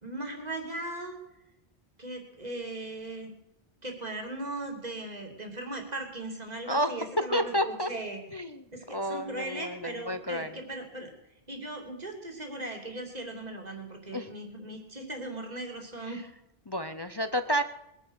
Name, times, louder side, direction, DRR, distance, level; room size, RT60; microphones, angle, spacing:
voice 1, 0.0-1.2 2.0-3.3 3.8-8.2 8.7-11.1 11.5-16.2, right 2 dB, 40° right, 3 dB, 3.0 m, -38 dB
voice 2, 7.2-7.9 8.3-8.6 8.9-10.5 14.1-14.3 16.7-17.6, equal, 30° left, 9 dB, 0.6 m, -30 dB
21.5 x 9.9 x 6.4 m, 0.85 s
omnidirectional pair, 1.1 m